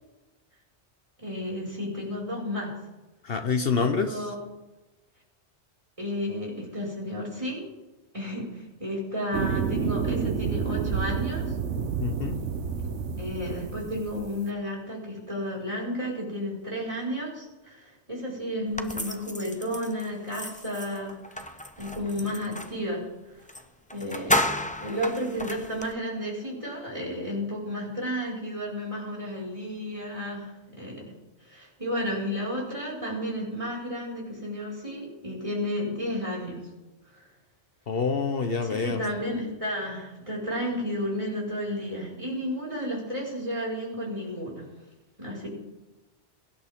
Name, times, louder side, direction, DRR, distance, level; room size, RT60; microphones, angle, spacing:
voice 1, 1.2-2.7 3.8-4.3 6.0-7.6 8.1-11.6 13.2-23.5 23.9-31.1 31.4-36.7 37.1-37.3 38.6-44.7 45.2-45.5, equal, 30° right, -4 dB, 5.4 m, -32 dB
voice 2, 3.2-4.2 12.0-12.4 37.9-39.0, left 5 dB, 60° left, 6 dB, 1.1 m, -27 dB
sound 1, 9.3-14.3, right 6 dB, 80° right, 1.2 m, -29 dB
sound 2, 18.8-22.8 23.5-23.6 23.9-25.9, left 1 dB, 10° left, 0.7 m, -32 dB
23.5 x 11.0 x 3.7 m, 1.1 s
omnidirectional pair, 1.2 m